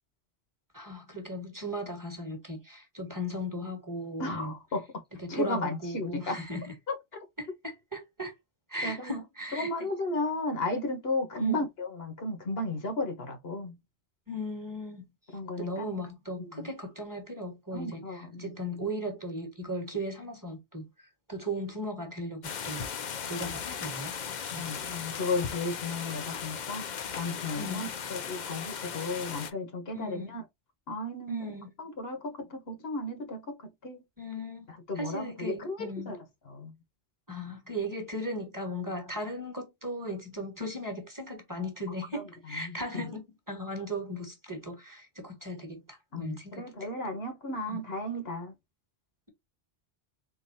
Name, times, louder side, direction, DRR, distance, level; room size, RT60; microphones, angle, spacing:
voice 1, 0.7-4.5 5.2-6.7 7.4-8.3 8.7-9.9 11.4-11.7 14.3-15.0 15.6-22.9 23.3-24.2 24.5-24.6 27.6-27.9 29.9-30.3 31.3-31.7 34.2-36.2 37.3-46.6 47.7-47.8, equal, 20° right, 1.2 m, -37 dB
voice 2, 4.2-4.9 5.3-6.4 6.9-7.0 8.8-9.2 9.5-13.8 15.3-16.0 16.4-16.7 17.7-18.6 24.6-26.9 27.2-30.4 30.9-33.6 33.8-34.0 34.7-36.2 36.5-36.7 42.1-43.0 46.1-48.5, left 2 dB, 65° left, 1.3 m, -34 dB
sound 1, 22.4-29.5, left 7 dB, 50° left, 0.6 m, -37 dB
4.0 x 3.8 x 2.7 m
omnidirectional pair, 1.1 m